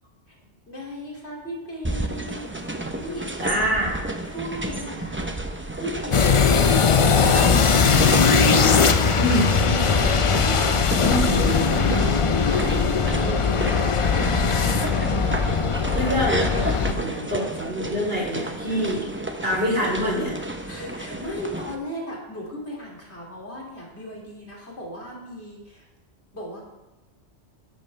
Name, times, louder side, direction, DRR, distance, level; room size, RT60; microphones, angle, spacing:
voice 1, 0.7-2.6 2.9-3.4 4.3-8.5 8.7-14.9 17.0-17.2 20.7-25.9 26.3-26.6, equal, 65° left, -2 dB, 3.0 m, -37 dB
sound 1, 1.8-21.8, right 1 dB, 10° right, 0.7 m, -31 dB
voice 2, 3.4-4.0 9.2-9.4 11.0-11.4 13.6-13.7 15.9-16.5 16.9-19.1 19.4-20.4, equal, 55° right, -4 dB, 3.9 m, -25 dB
sound 2, 6.1-16.9, left 5 dB, 40° left, 0.4 m, -20 dB
12.0 x 10.5 x 3.3 m, 1.0 s
omnidirectional pair, 1.2 m